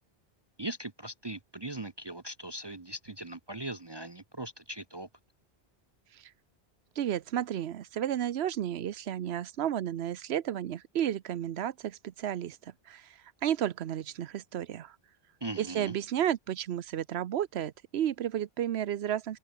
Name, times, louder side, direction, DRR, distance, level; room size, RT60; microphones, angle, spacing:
voice 1, 0.6-5.1 15.4-15.9, right 2 dB, 25° right, 0.8 m, -39 dB
voice 2, 7.0-15.0 15.6-19.4, right 10 dB, 90° right, 1.0 m, -32 dB
open air
omnidirectional pair, 1.0 m